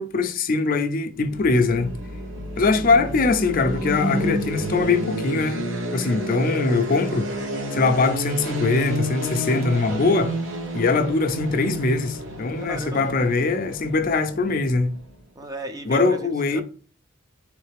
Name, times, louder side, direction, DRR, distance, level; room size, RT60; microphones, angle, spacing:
voice 1, 0.0-2.0 2.6-5.6 5.9-7.3 7.7-10.3 10.7-15.0 15.9-16.6, left 3 dB, 45° left, 0.5 m, -22 dB
sound 1, 1.2-15.1, right 1 dB, 70° right, 0.9 m, -30 dB
voice 2, 12.6-13.2 15.4-16.6, right 2 dB, 20° right, 0.4 m, -36 dB
3.8 x 3.2 x 3.3 m
head